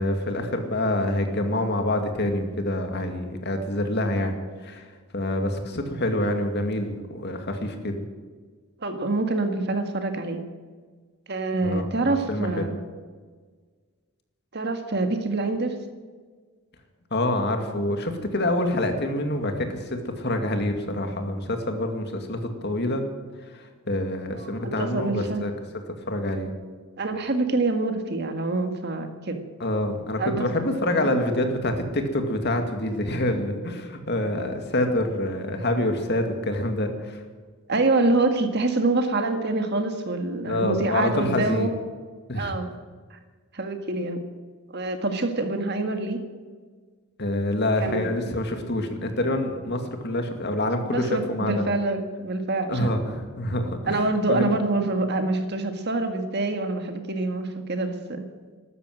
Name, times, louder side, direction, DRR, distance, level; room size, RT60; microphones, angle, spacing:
voice 1, 0.0-4.3 4.6-4.9 5.1-8.0 11.6-12.7 17.1-23.0 23.5-25.5 26.1-26.5 29.6-37.2 40.5-41.7 42.3-42.5 47.2-51.7 52.7-54.0 54.3-54.5, left 1 dB, 50° left, 5 dB, 2.3 m, -26 dB
voice 2, 8.8-10.4 11.3-12.8 14.5-15.7 24.3-25.5 27.0-29.4 30.2-30.6 30.9-31.2 37.7-41.7 42.3-42.7 43.1-43.2 43.5-44.2 44.7-46.2 47.8-48.1 50.9-53.2 53.9-58.3, right 2 dB, 50° right, 6 dB, 1.8 m, -26 dB
14.0 x 13.0 x 7.7 m, 1.5 s
head